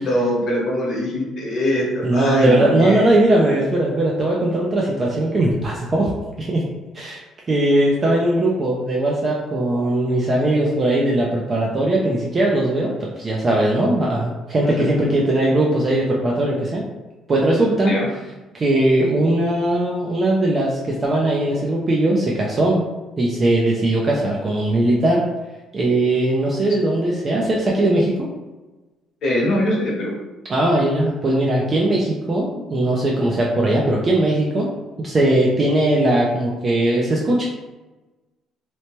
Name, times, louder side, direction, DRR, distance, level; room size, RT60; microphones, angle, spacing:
voice 1, 0.0-3.0 14.8-14.9 17.8-18.1 29.2-30.1, left 1 dB, 55° left, -3 dB, 0.9 m, -22 dB
voice 2, 2.0-6.1 6.4-6.6 6.9-7.2 7.5-16.8 17.3-18.0 18.5-22.8 23.2-25.3 25.7-28.3 30.5-34.7 35.0-37.4, right 1 dB, 25° right, -3 dB, 0.3 m, -19 dB
2.8 x 2.1 x 2.9 m, 1.1 s
cardioid pair, 150°, 0 cm